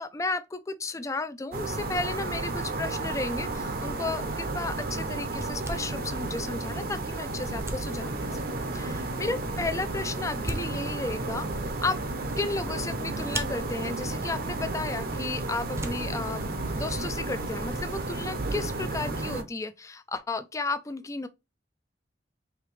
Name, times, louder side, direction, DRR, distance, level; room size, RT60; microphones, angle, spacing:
voice 1, 0.0-8.4 8.7-12.0 12.4-16.4 16.7-21.3, left 3 dB, 20° left, 0.4 m, -33 dB
sound 1, 1.5-19.4, right 2 dB, 55° right, 0.8 m, -32 dB
sound 2, 4.1-17.6, right 1 dB, 15° right, 0.7 m, -44 dB
4.8 x 3.0 x 3.1 m
head